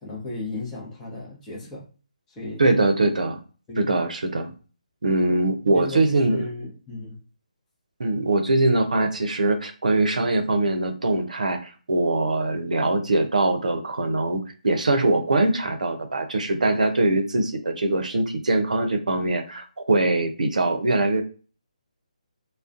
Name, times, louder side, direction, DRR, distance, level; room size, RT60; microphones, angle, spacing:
voice 1, 0.0-1.9 2.3-2.6 3.7-3.9 5.7-7.2, left 2 dB, 10° left, -5 dB, 0.7 m, -35 dB
voice 2, 2.6-3.4 3.8-4.5 5.0-6.5 8.0-21.2, right 2 dB, 70° right, 7 dB, 0.6 m, -22 dB
2.3 x 2.1 x 2.5 m, 0.37 s
figure-of-eight pair, 150°, 4 cm